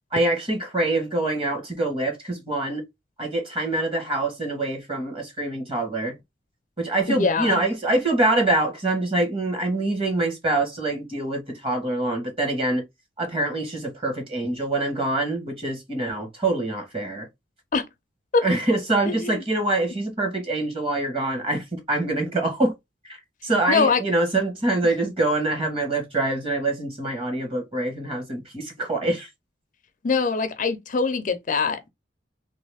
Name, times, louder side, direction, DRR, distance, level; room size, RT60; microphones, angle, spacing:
voice 1, 0.1-2.8 3.2-6.2 6.8-12.8 13.2-17.3 18.4-22.7 23.0-23.2 23.4-29.3, right 2 dB, 30° right, 1.5 m, -25 dB
voice 2, 7.1-7.6 17.7-17.8 18.3-18.4 19.1-19.4 23.7-24.0 30.0-31.9, left 4 dB, 45° left, 0.5 m, -23 dB
3.1 x 2.9 x 3.3 m
head